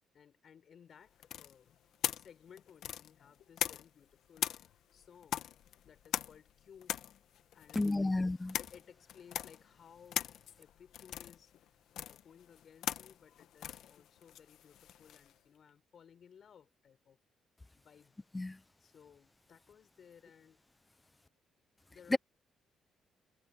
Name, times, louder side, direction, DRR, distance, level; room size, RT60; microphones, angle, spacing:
voice 1, 0.1-1.8 2.2-5.5 5.8-7.0 7.5-8.1 8.5-17.2 17.8-18.2 18.8-20.6 21.9-22.2, left 7 dB, 55° left, 5.2 m, -60 dB
sound 1, 1.2-4.0 4.4-15.3, left 11 dB, 75° left, 1.3 m, -41 dB
voice 2, 7.8-8.5 18.3-18.6 22.1-22.2, left 2 dB, 15° left, 0.6 m, -31 dB
cardioid pair, 90°, 0 cm